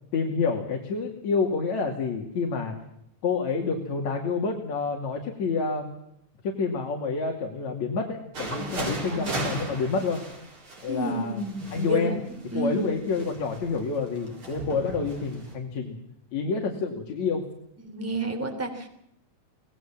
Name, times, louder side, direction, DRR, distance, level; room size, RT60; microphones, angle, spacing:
voice 1, 0.1-2.8 3.2-5.9 6.4-10.2 10.8-11.4 11.7-12.2 12.5-16.0 16.3-17.4, left 4 dB, 65° left, 1 dB, 3.7 m, -28 dB
sound 1, 8.3-15.6, right 2 dB, 40° right, 5.6 m, -37 dB
voice 2, 8.5-9.3 10.9-12.2 12.5-12.9 17.8-18.9, right 2 dB, 5° right, 6 dB, 2.9 m, -31 dB
25.5 x 19.0 x 7.4 m, 0.76 s
omnidirectional pair, 3.5 m